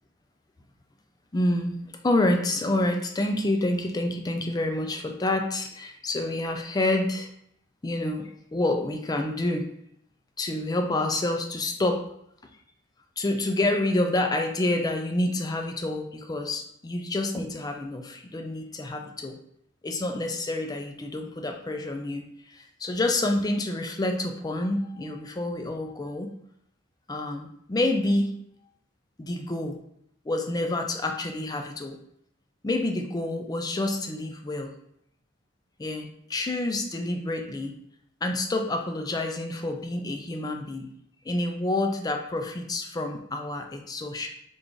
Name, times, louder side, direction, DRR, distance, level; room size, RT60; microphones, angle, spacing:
voice 1, 1.3-7.3 7.8-9.7 10.4-12.0 13.2-19.4 19.8-26.3 27.1-28.3 29.2-29.8 30.3-32.0 32.6-34.7 35.8-37.7 38.2-40.9 41.3-44.3, left 2 dB, 20° left, 5 dB, 0.4 m, -28 dB
3.4 x 2.5 x 3.7 m, 0.72 s
head